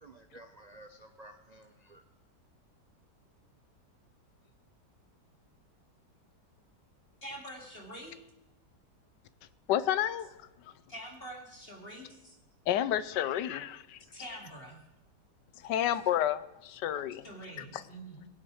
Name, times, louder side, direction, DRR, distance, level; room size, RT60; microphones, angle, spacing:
voice 1, 0.0-2.0, right 1 dB, 75° right, 0.3 m, -53 dB
voice 2, 7.2-8.2 10.9-12.4 13.6-13.8 14.1-14.8 17.2-18.3, right 1 dB, 35° left, 2.9 m, -45 dB
voice 3, 9.7-10.3 12.7-14.0 15.6-17.2, left 11 dB, 85° left, 1.3 m, -30 dB
22.5 x 8.0 x 4.8 m
omnidirectional pair, 1.8 m